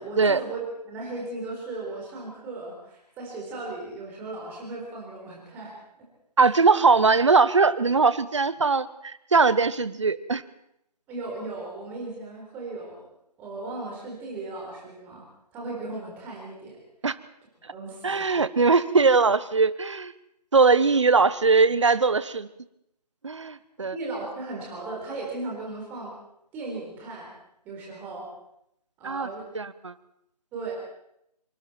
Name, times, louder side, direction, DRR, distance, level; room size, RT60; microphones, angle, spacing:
voice 1, 0.0-5.7 11.1-13.0 13.4-15.2 15.5-16.8 17.7-18.2 23.9-26.1 26.5-27.3 27.6-28.3 29.0-29.5 30.5-30.7, right 2 dB, 10° right, -3 dB, 4.1 m, -36 dB
voice 2, 6.4-10.4 17.0-17.1 17.6-17.7 18.0-20.1 20.5-22.5 23.2-23.9 29.0-29.3 29.5-29.9, right 4 dB, 45° right, 16 dB, 1.1 m, -21 dB
25.5 x 25.0 x 4.5 m, 0.78 s
figure-of-eight pair, 155°, 21 cm